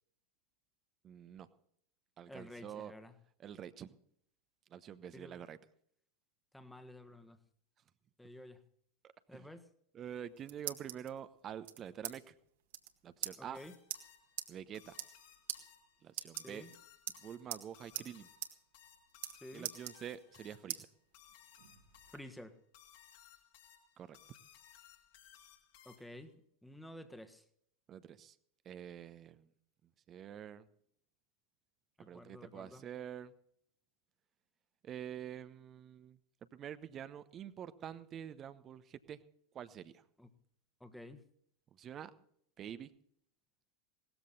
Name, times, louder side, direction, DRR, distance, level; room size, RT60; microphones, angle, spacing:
voice 1, 1.0-1.5 2.2-2.9 3.4-3.9 4.7-5.6 9.3-9.5 9.9-12.3 13.0-13.6 14.5-15.0 16.0-16.6 17.2-18.3 19.5-20.9 24.0-24.2 27.9-28.4 28.6-29.5 30.1-30.7 32.1-33.3 34.8-36.2 36.5-39.2 39.5-40.0 41.8-42.1 42.6-42.9, right 9 dB, 30° right, 13 dB, 0.9 m, -47 dB
voice 2, 2.3-3.1 5.1-5.4 6.5-7.4 8.2-8.6 9.3-9.6 13.4-13.7 16.4-16.7 19.4-19.7 22.1-22.5 25.8-26.3 26.6-27.4 32.0-32.8 40.2-40.3 40.8-41.2, left 1 dB, 5° left, 8 dB, 1.5 m, -51 dB
sound 1, 10.1-11.1 11.6-12.1 12.4-12.5 12.7-12.9 13.2-13.3 13.9-14.0 14.4-14.5 14.9-15.2 15.5-15.6 16.1-16.7 17.1-17.6 17.9-18.1 18.4-18.5 18.8-19.3 19.6-20.4 20.7-20.8 21.3-22.2, right 12 dB, 55° right, 1.8 m, -42 dB
sound 2, 13.5-26.3, left 10 dB, 50° left, 2.9 m, -61 dB
18.5 x 14.0 x 4.1 m, 0.66 s
figure-of-eight pair, 90°, 0 cm